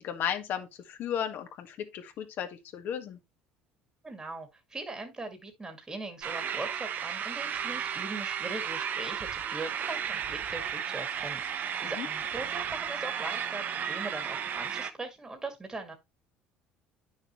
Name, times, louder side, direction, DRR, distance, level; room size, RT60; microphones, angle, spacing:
voice 1, 0.0-3.2 11.8-12.1, left 9 dB, 60° left, 1.7 m, -35 dB
voice 2, 4.0-15.9, right 2 dB, 20° right, 2.0 m, -40 dB
sound 1, 6.2-14.9, right 8 dB, 50° right, 1.0 m, -34 dB
9.4 x 6.5 x 3.1 m
supercardioid pair, 90°, 4 cm